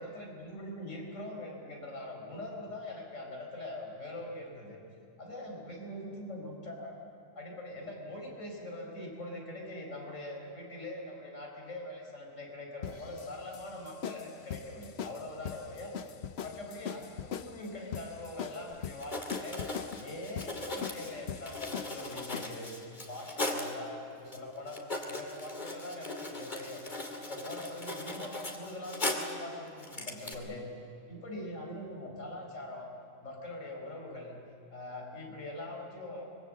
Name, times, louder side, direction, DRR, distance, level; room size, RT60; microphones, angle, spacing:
voice 1, 0.0-4.8 5.2-7.0 7.3-15.9 16.4-19.6 19.9-22.7 23.1-24.8 25.1-26.8 27.2-30.7 31.1-32.9 33.2-34.4 34.7-36.2, left 1 dB, 80° left, 0 dB, 5.2 m, -42 dB
sound 1, 12.8-22.7, left 8 dB, 60° left, 1.0 m, -41 dB
Writing, 18.7-18.8 19.0-23.8 24.3-24.4 24.7-29.4 29.8-30.3, left 2 dB, 35° left, 2.6 m, -38 dB
24.5 x 22.5 x 7.6 m, 3.0 s
omnidirectional pair, 1.3 m